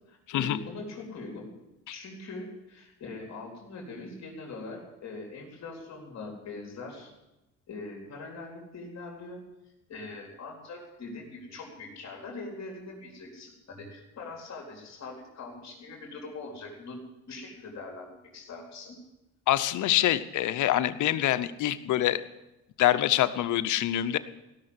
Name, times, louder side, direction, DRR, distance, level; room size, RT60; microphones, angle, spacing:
voice 1, 0.1-1.5 1.9-7.1 7.7-9.4 9.9-17.0 17.3-19.0, left 3 dB, 60° left, 0 dB, 4.0 m, -42 dB
voice 2, 19.5-22.2 22.8-24.2, left 13 dB, 75° left, 13 dB, 0.8 m, -25 dB
17.0 x 6.7 x 9.6 m, 0.96 s
cardioid pair, 90°, 30 cm